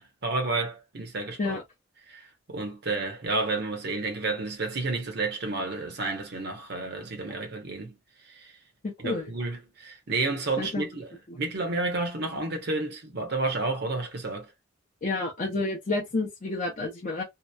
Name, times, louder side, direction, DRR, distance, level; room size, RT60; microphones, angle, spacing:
voice 1, 0.0-1.6 2.1-8.0 8.2-8.5 9.0-11.1 11.3-14.5, right 3 dB, 50° right, 0.8 m, -31 dB
voice 2, 8.8-9.2 10.6-10.8 15.0-17.2, left 3 dB, 40° left, 0.5 m, -29 dB
2.7 x 2.0 x 2.2 m
head